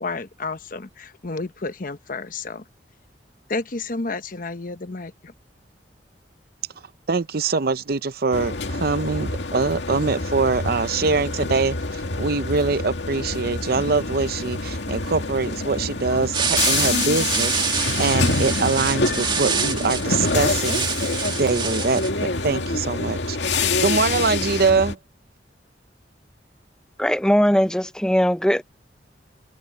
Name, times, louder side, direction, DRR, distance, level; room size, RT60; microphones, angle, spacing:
voice 1, 0.0-2.6 3.5-5.3, left 3 dB, 50° left, 1.0 m, -31 dB
voice 2, 7.1-23.4 23.8-25.0, right 4 dB, 60° right, 0.7 m, -23 dB
sound 1, 8.3-24.9, left 3 dB, 85° left, 2.2 m, -26 dB
sound 2, 16.3-22.1, right 6 dB, 25° right, 2.1 m, -26 dB
voice 3, 27.0-28.6, equal, 5° left, 0.8 m, -19 dB
head